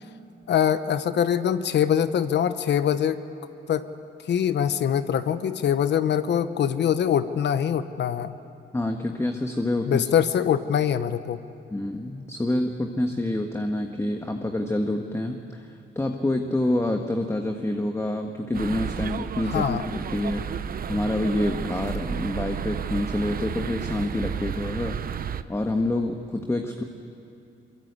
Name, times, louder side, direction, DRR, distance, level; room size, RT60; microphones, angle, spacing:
voice 1, 0.5-3.2 3.7-3.9 4.3-8.3 9.9-11.4 19.5-19.8, left 9 dB, 60° left, 12 dB, 1.1 m, -23 dB
voice 2, 8.7-10.1 11.7-15.7 15.9-25.0 25.5-26.8, left 1 dB, 15° left, 4 dB, 1.5 m, -27 dB
sound 1, 18.5-25.4, right 7 dB, 50° right, 0.9 m, -32 dB
23.0 x 22.5 x 8.2 m, 2.8 s
cardioid pair, 90°, 20 cm